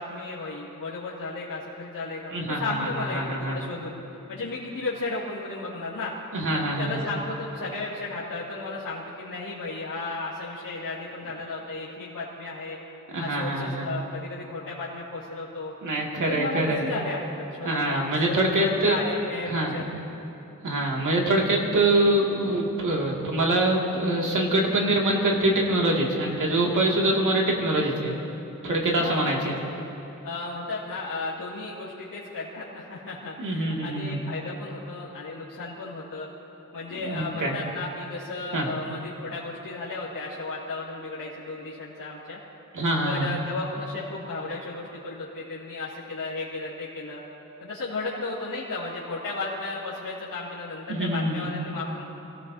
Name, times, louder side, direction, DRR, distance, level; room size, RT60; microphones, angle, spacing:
voice 1, 0.0-3.9 4.3-6.1 6.5-12.8 13.2-15.7 16.3-19.9 29.0-29.5 30.2-36.3 36.7-42.4 43.0-47.2 47.6-52.0, left 3 dB, 75° left, -9 dB, 2.4 m, -34 dB
voice 2, 2.3-3.7 6.3-7.0 13.1-13.9 15.8-16.8 17.6-19.0 19.5-19.8 20.6-28.1 28.6-29.5 33.4-34.2 37.0-37.5 38.5-38.7 42.7-43.3 50.9-51.5, right 1 dB, 65° right, -2 dB, 2.3 m, -24 dB
27.0 x 18.0 x 2.7 m, 2.9 s
wide cardioid pair, 180°, 33 cm